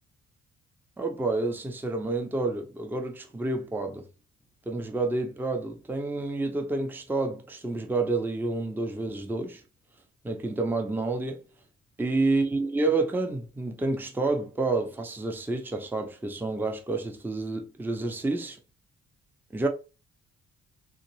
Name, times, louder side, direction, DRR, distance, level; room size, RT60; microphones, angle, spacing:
voice 1, 1.0-4.0 4.7-9.6 10.2-11.4 12.0-18.6 19.5-19.7, right 3 dB, 5° right, 0.6 m, -29 dB
3.8 x 2.5 x 3.0 m
figure-of-eight pair, 40°, 40 cm